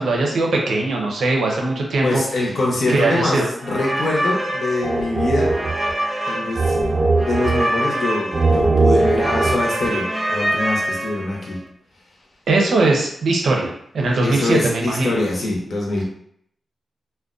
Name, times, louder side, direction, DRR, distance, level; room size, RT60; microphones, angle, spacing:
voice 1, 0.0-2.2 2.9-3.5 12.5-15.1, right 2 dB, 90° right, 0 dB, 0.6 m, -20 dB
voice 2, 2.0-5.5 6.3-6.9 7.2-11.6 14.2-16.0, left 2 dB, 65° left, -2 dB, 0.7 m, -24 dB
sound 1, 3.6-11.5, right 2 dB, 30° right, 0.4 m, -21 dB
2.4 x 2.1 x 2.4 m, 0.70 s
wide cardioid pair, 130°, 0 cm